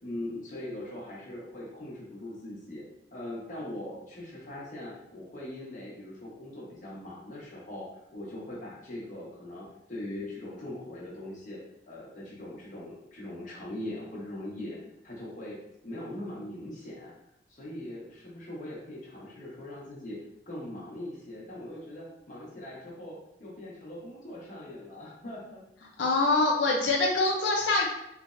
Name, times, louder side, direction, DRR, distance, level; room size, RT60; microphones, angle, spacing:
voice 1, 0.0-2.8 3.1-11.6 11.8-15.6 15.8-17.1 17.5-20.2 20.5-25.6, left 1 dB, 45° left, -5 dB, 1.0 m, -41 dB
voice 2, 26.0-27.9, left 2 dB, 90° left, -2 dB, 0.5 m, -24 dB
3.3 x 3.1 x 2.5 m, 0.81 s
head